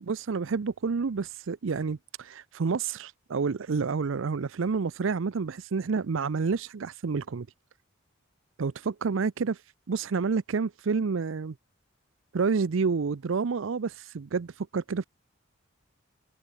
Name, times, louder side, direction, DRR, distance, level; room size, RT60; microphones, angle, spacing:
voice 1, 0.1-7.5 8.6-9.6 9.9-11.5 12.3-15.0, right 5 dB, 70° right, 0.5 m, -29 dB
head